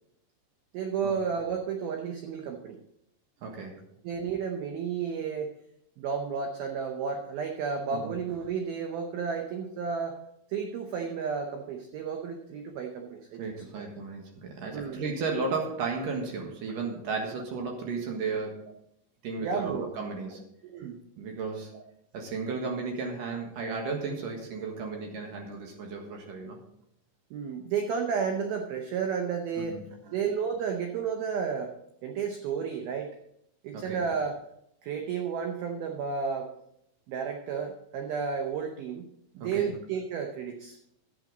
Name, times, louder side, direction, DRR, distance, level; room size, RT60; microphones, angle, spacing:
voice 1, 0.7-2.8 4.0-5.5 6.0-10.2 10.5-13.4 13.8-13.9 14.7-15.1 19.4-19.9 20.6-21.0 21.7-21.8 27.3-29.8 30.0-31.7 32.0-33.1 33.6-34.4 34.8-36.5 37.1-39.1 39.3-40.8, right 6 dB, 80° right, 4 dB, 2.1 m, -32 dB
voice 2, 3.4-3.8 7.9-8.2 13.4-18.7 19.2-20.4 21.2-21.8 22.1-26.6 29.6-29.8 33.7-34.1 39.4-39.7, right 4 dB, 60° right, 2 dB, 2.5 m, -34 dB
11.5 x 9.1 x 3.9 m, 0.77 s
omnidirectional pair, 5.4 m